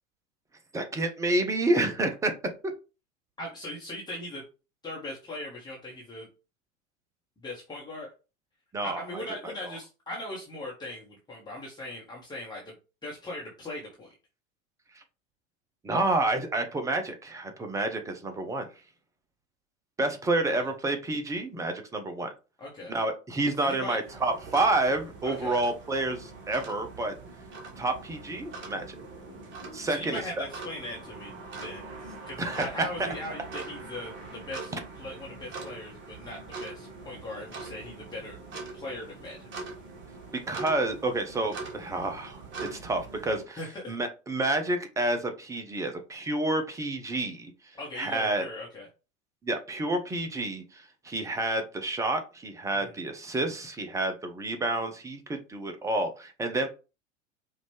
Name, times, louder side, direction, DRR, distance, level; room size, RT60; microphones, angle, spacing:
voice 1, 0.7-2.3 8.7-9.5 15.8-18.7 20.0-22.3 22.9-27.1 27.8-29.0 29.7-30.4 32.4-32.7 40.5-42.4 42.7-43.6 43.9-47.5 48.0-48.4 49.4-56.7, right 2 dB, 10° right, 6 dB, 0.5 m, -29 dB
voice 2, 3.4-4.4 4.8-6.3 7.4-8.1 8.8-12.7 13.0-14.1 20.4-20.7 22.6-22.9 23.6-24.0 25.2-25.5 29.9-38.4 38.7-39.5 43.5-44.0 47.8-48.9 52.7-53.0, left 1 dB, 10° left, -4 dB, 1.2 m, -39 dB
sound 1, 24.0-43.4, right 3 dB, 30° right, 1.3 m, -43 dB
5.1 x 2.5 x 3.5 m, 0.31 s
figure-of-eight pair, 90°, 39 cm